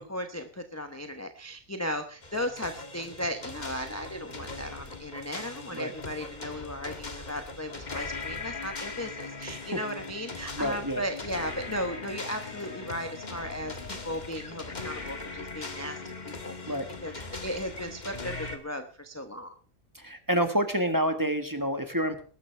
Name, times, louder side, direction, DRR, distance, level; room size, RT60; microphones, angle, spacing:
voice 1, 0.0-17.1 17.4-19.5, equal, 15° left, 5 dB, 0.9 m, -36 dB
sound 1, 2.2-18.6, left 3 dB, 35° left, 1.6 m, -40 dB
voice 2, 10.6-11.0 16.7-16.8 17.1-17.3 19.9-22.2, equal, 15° right, 7 dB, 1.4 m, -28 dB
21.0 x 12.0 x 3.4 m, 0.38 s
omnidirectional pair, 1.4 m